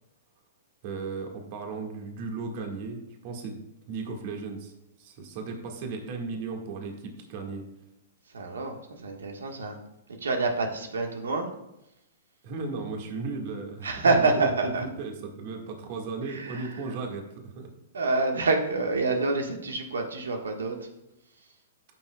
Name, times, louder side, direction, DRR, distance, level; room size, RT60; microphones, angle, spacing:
voice 1, 0.8-3.6 3.9-4.7 5.0-7.7 12.4-17.7, right 4 dB, 50° right, 2 dB, 1.7 m, -36 dB
voice 2, 8.3-9.7 10.2-11.5 13.8-14.8 16.3-16.7 17.9-20.8, right 3 dB, 90° right, 3 dB, 1.5 m, -27 dB
14.0 x 6.2 x 2.3 m, 0.87 s
hypercardioid pair, 125°, 0 cm